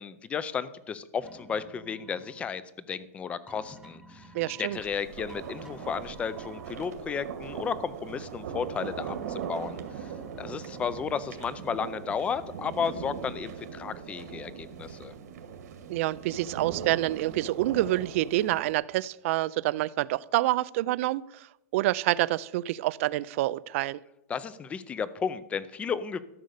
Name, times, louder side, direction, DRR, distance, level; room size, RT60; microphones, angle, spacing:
voice 1, 0.0-4.3 4.6-10.1 10.4-15.1 24.3-26.2, left 6 dB, 15° left, 16 dB, 0.5 m, -33 dB
sound 1, 1.2-2.5 3.5-4.8 5.3-6.7 9.1-11.3, right 1 dB, 5° right, 0.9 m, -51 dB
voice 2, 4.3-4.8 15.9-21.5 21.7-24.0, right 16 dB, 55° right, 19 dB, 0.4 m, -27 dB
sound 2, 4.7-18.7, right 7 dB, 80° right, 1.9 m, -40 dB
13.0 x 6.6 x 6.5 m, 0.90 s
supercardioid pair, 165°, 9 cm